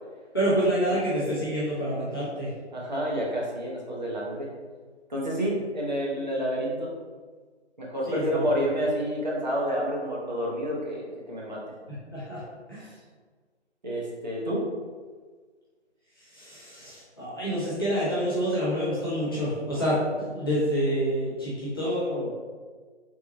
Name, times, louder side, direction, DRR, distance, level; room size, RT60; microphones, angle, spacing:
voice 1, 0.3-2.5 8.1-8.4 11.9-12.4 12.7-12.9 16.2-22.3, equal, 20° left, -10 dB, 0.7 m, -27 dB
voice 2, 2.7-4.5 5.1-6.9 7.8-11.6 13.8-14.6, equal, 40° right, -5 dB, 0.8 m, -29 dB
3.6 x 2.2 x 4.0 m, 1.5 s
figure-of-eight pair, 155°, 35 cm